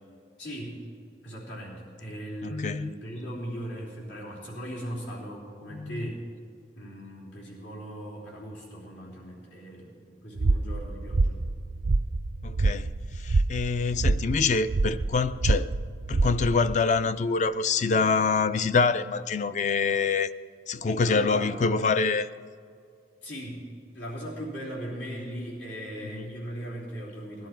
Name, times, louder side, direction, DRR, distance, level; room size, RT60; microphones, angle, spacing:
voice 1, 0.4-0.8 1.2-6.2 6.7-11.4 21.0-21.5 23.2-23.6 23.9-27.5, equal, 90° left, 3.4 m, -38 dB
voice 2, 2.4-2.9 5.7-6.1 12.4-12.9 13.2-15.7 16.1-20.3 20.7-22.3 26.1-26.3, left 4 dB, 40° left, 0.3 m, -25 dB
sound 1, 10.4-16.8, right 3 dB, 60° right, 0.5 m, -27 dB
19.5 x 11.5 x 4.4 m
head